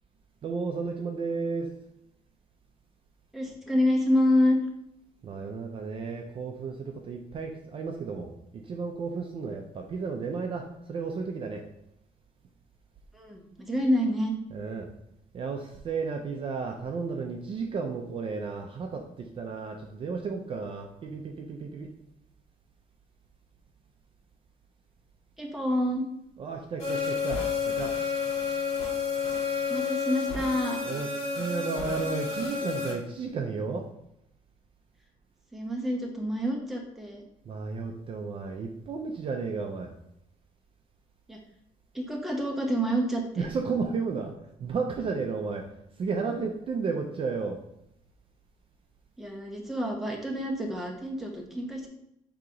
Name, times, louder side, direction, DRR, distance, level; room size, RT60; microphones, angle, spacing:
voice 1, 0.4-1.7 5.2-11.6 14.5-14.9 15.3-21.9 26.4-27.9 30.9-33.8 37.5-39.9 43.4-44.3 44.6-45.6 46.0-47.6, right 4 dB, 40° right, 2 dB, 0.4 m, -33 dB
voice 2, 3.3-4.6 13.1-14.3 25.4-26.1 29.7-30.8 35.5-37.2 41.3-41.4 41.9-43.5 49.2-51.9, equal, ahead, -1 dB, 0.8 m, -27 dB
sound 1, 26.8-32.9, left 5 dB, 45° left, 1.5 m, -30 dB
3.8 x 2.9 x 4.8 m, 0.80 s
cardioid pair, 145°, 14 cm